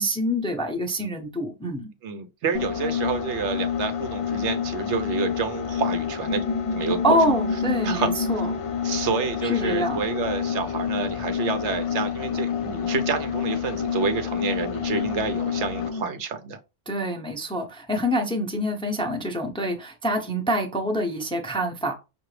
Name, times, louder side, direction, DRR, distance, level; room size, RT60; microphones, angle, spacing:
voice 1, 0.0-1.9 7.0-8.5 9.4-10.0 16.9-21.9, equal, 5° left, 0.6 m, -26 dB
voice 2, 2.0-6.4 6.7-7.2 7.8-8.4 8.8-16.6, right 5 dB, 75° right, 1.0 m, -29 dB
sound 1, 2.5-16.1, left 7 dB, 55° left, 0.3 m, -28 dB
5.7 x 2.6 x 3.2 m
omnidirectional pair, 1.2 m